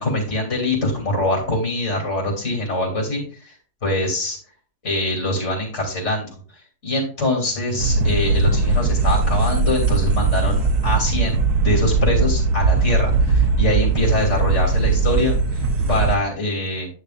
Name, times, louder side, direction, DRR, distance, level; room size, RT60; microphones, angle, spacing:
voice 1, 0.0-3.5 3.8-4.4 4.8-6.4 6.8-16.9, left 1 dB, 45° left, 0 dB, 3.3 m, -24 dB
sound 1, 7.8-16.2, right 3 dB, 80° right, 1.4 m, -19 dB
9.7 x 6.9 x 2.5 m, 0.40 s
omnidirectional pair, 1.6 m